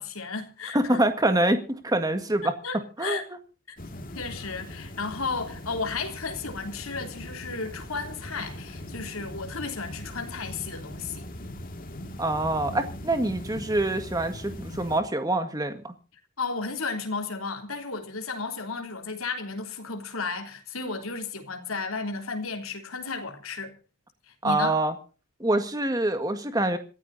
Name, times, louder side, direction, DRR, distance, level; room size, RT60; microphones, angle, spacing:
voice 1, 0.0-1.0 2.4-3.2 3.7-3.8 4.1-11.3 16.4-23.7 24.3-24.8, left 4 dB, 75° left, 3.4 m, -34 dB
voice 2, 0.7-2.5 3.0-3.2 12.2-15.9 24.4-24.9 25.4-26.8, right 1 dB, 15° right, 1.8 m, -25 dB
sound 1, 3.8-15.0, left 1 dB, 40° left, 2.1 m, -40 dB
27.0 x 15.0 x 2.7 m
head